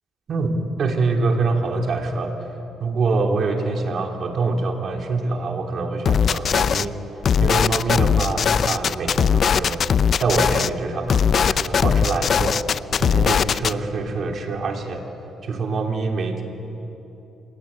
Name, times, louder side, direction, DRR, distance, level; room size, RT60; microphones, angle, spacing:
voice 1, 0.3-2.5 2.8-7.0 7.4-9.8 10.2-12.6 13.0-15.0 15.4-16.4, right 3 dB, 55° right, 2 dB, 3.2 m, -25 dB
sound 1, 6.1-6.9 7.2-10.7 11.1-13.7, left 7 dB, 55° left, 0.5 m, -19 dB
26.5 x 18.5 x 8.7 m, 3.0 s
cardioid pair, 90°, 0 cm